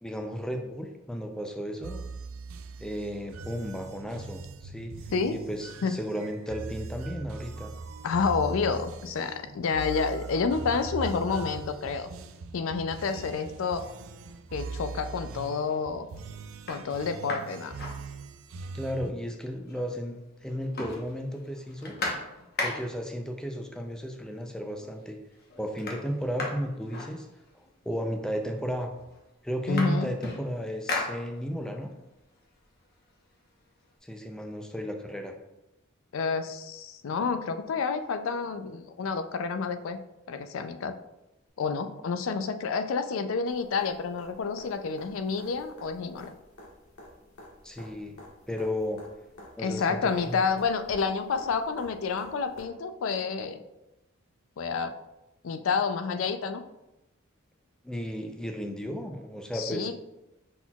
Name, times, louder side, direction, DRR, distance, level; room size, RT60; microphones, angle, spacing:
voice 1, 0.0-2.0 2.8-4.9 5.3-7.7 18.7-21.9 22.6-25.2 25.6-27.3 27.5-28.9 29.4-31.9 34.0-35.3 47.6-48.2 48.5-49.0 49.6-50.4 57.8-59.9, equal, 5° left, 4 dB, 0.4 m, -34 dB
sound 1, 1.8-19.1, right 3 dB, 70° right, 0.4 m, -41 dB
voice 2, 8.0-12.1 12.5-13.8 14.5-16.1 16.7-17.7 29.7-30.1 36.1-40.0 40.3-40.9 41.6-46.3 49.6-53.6 54.6-54.9 55.4-56.6 59.5-60.0, left 5 dB, 70° left, 9 dB, 0.4 m, -29 dB
sound 2, 15.4-15.6 16.1-16.2 16.5-18.6 19.0-19.1 19.3-20.1 20.4-23.1 24.1-24.2 24.6-25.1 25.3-27.7 28.5-28.6 28.9-31.8 32.2-33.9, left 2 dB, 50° left, 0.9 m, -37 dB
sound 3, 43.5-52.6 54.6-54.7, left 1 dB, 90° left, 1.4 m, -50 dB
5.7 x 4.1 x 2.3 m, 0.95 s
head